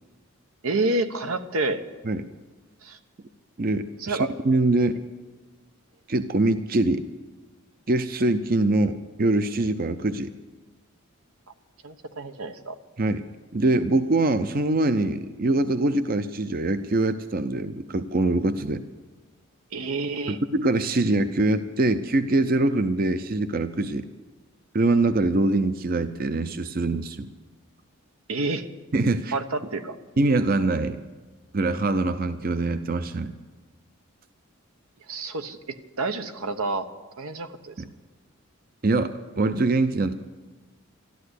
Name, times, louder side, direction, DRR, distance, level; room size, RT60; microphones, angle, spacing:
voice 1, 0.6-1.8 2.8-3.0 4.0-4.3 11.8-12.8 19.7-20.4 28.3-28.7 29.3-30.0 35.1-35.6 36.0-36.9 37.2-37.7, right 2 dB, 90° right, 9 dB, 1.1 m, -28 dB
voice 2, 3.6-5.0 6.1-7.1 7.9-10.3 13.0-13.2 13.5-18.8 20.3-24.1 24.7-27.3 28.9-29.4 30.2-31.0 31.5-33.3 37.8-37.9 38.8-40.1, right 2 dB, 45° right, 10 dB, 0.6 m, -23 dB
13.5 x 12.5 x 8.2 m, 1.3 s
head